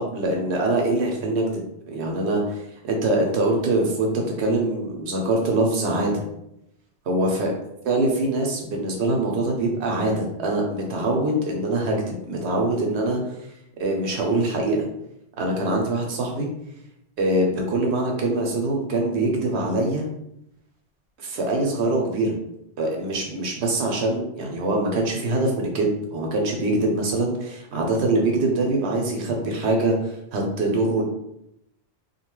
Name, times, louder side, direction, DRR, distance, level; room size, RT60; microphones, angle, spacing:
voice 1, 0.0-1.6 1.9-6.2 7.1-7.5 7.8-13.2 13.8-14.9 15.4-16.5 17.2-20.0 21.2-22.4 22.8-31.0, right 2 dB, 80° right, 1 dB, 0.9 m, -23 dB
2.7 x 2.2 x 3.0 m, 0.79 s
omnidirectional pair, 1.1 m